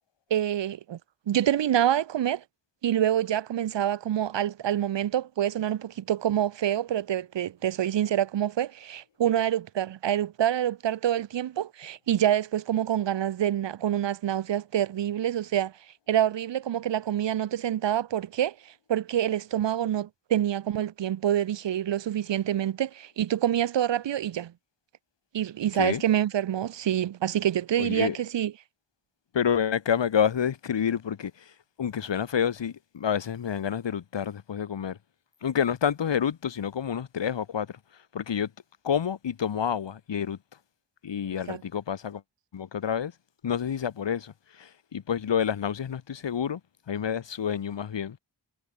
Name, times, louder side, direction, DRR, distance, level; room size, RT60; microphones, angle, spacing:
voice 1, 0.3-1.0 1.3-2.4 2.8-15.7 16.1-18.5 18.9-24.5 25.3-28.5 41.5-41.6, right 11 dB, 90° right, 0.6 m, -26 dB
voice 2, 27.8-28.2 29.3-31.3 31.8-35.0 35.4-37.7 38.1-38.5 38.8-40.4 41.0-42.2 42.5-43.1 43.4-44.3 44.6-46.6 46.9-48.2, left 8 dB, 85° left, 1.2 m, -28 dB
cardioid pair, 55°, 42 cm